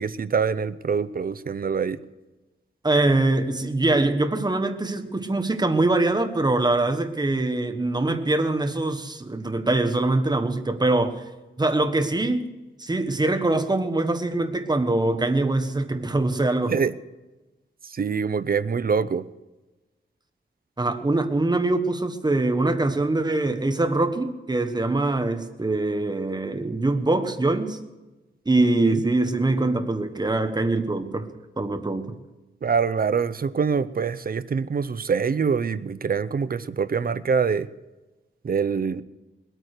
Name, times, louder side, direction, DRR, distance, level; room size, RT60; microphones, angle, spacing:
voice 1, 0.0-2.0 16.7-16.9 17.9-19.2 28.8-29.0 32.6-37.7 38.4-39.0, right 6 dB, 50° right, 14 dB, 0.6 m, -25 dB
voice 2, 2.8-11.2 11.6-12.5 12.8-16.8 20.8-27.8 28.4-31.3 31.6-32.1, right 2 dB, 20° right, 7 dB, 1.2 m, -23 dB
20.5 x 9.1 x 6.6 m, 1.1 s
wide cardioid pair, 135°, 20 cm